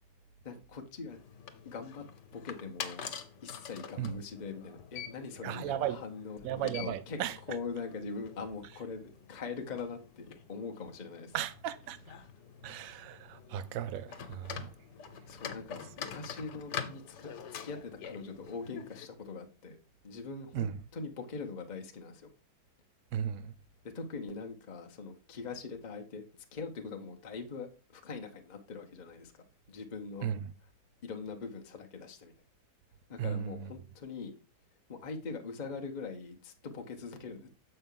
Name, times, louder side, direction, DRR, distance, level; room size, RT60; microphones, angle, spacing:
voice 1, 0.4-1.2 1.6-2.0 2.3-3.0 3.4-7.2 7.5-11.3 15.3-19.8 20.0-22.3 23.9-26.2 26.5-30.3 31.0-32.3 33.1-34.3 34.9-37.5, left 4 dB, 35° left, 0.7 m, -42 dB
sound 1, 1.1-19.1, left 8 dB, 85° left, 1.5 m, -46 dB
voice 2, 5.4-6.0 6.4-7.4 11.3-12.0 12.6-14.7 20.5-20.7 23.1-23.5 30.2-30.5 33.2-33.7, right 10 dB, 65° right, 0.9 m, -35 dB
7.0 x 5.5 x 3.8 m
omnidirectional pair, 1.8 m